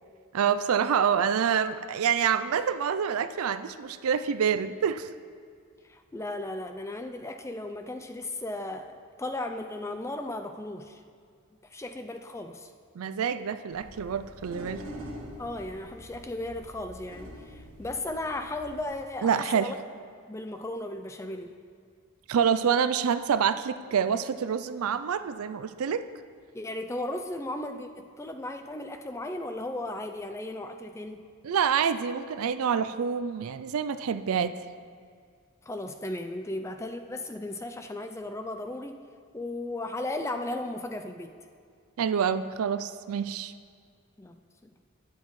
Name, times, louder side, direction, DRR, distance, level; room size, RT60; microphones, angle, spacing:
voice 1, 0.3-5.1 12.9-14.8 19.2-19.7 22.3-26.1 31.4-34.6 42.0-43.5, right 7 dB, 80° right, 12 dB, 0.4 m, -27 dB
voice 2, 5.8-11.0 11.7-12.7 15.4-19.8 20.3-21.5 26.5-31.3 35.7-39.0 39.3-41.4 44.2-44.7, left 2 dB, 15° left, 7 dB, 0.3 m, -36 dB
sound 1, 13.7-19.1, equal, 65° right, 1.3 m, -45 dB
12.0 x 9.5 x 3.1 m, 2.1 s
head